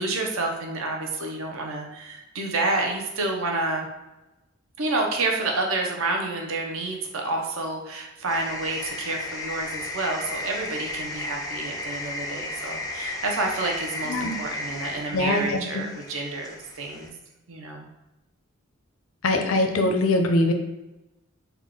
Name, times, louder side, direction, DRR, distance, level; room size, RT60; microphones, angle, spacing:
voice 1, 0.0-3.9 4.8-17.1 17.5-17.9, right 2 dB, 70° right, 1 dB, 0.6 m, -29 dB
sound 1, 8.3-17.1, left 2 dB, 15° left, 0.3 m, -34 dB
voice 2, 15.1-15.8 19.2-20.5, left 2 dB, 70° left, 5 dB, 0.5 m, -22 dB
3.5 x 2.2 x 3.6 m, 0.99 s
head